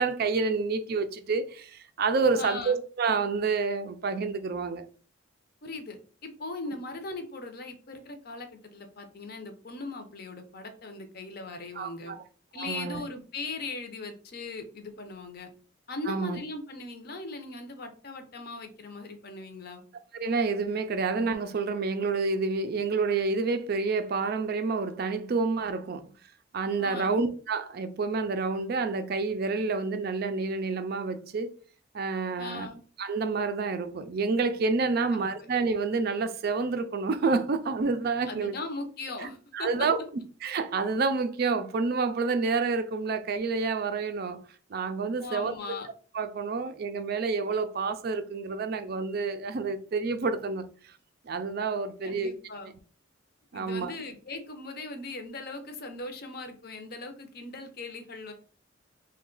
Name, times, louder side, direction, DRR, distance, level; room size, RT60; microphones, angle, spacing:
voice 1, 0.0-4.9 11.8-12.2 12.6-13.0 16.1-16.4 20.2-26.1 26.5-31.5 31.9-32.7 33.0-38.5 39.5-40.0 40.4-44.4 44.7-45.5 46.1-50.7 51.2-52.3 53.5-53.9, right 4 dB, 50° right, 0.4 m, -28 dB
voice 2, 2.3-2.8 5.6-12.2 12.5-15.5 15.9-19.8 26.8-27.2 32.4-32.8 35.0-35.1 38.3-39.7 45.2-45.9 52.0-52.7 53.5-58.3, left 3 dB, 45° left, 0.6 m, -39 dB
3.1 x 2.2 x 3.7 m
head